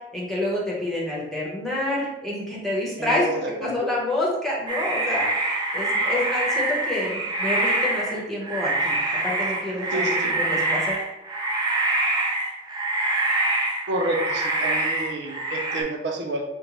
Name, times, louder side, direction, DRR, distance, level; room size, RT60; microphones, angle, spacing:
voice 1, 0.1-8.9 9.2-11.1, left 1 dB, ahead, -6 dB, 1.0 m, -28 dB
voice 2, 3.0-3.8 9.9-10.3 13.9-16.4, right 2 dB, 75° right, 2 dB, 0.6 m, -29 dB
sound 1, 4.7-15.8, right 2 dB, 25° right, 0.6 m, -25 dB
5.3 x 2.1 x 3.0 m, 0.98 s
head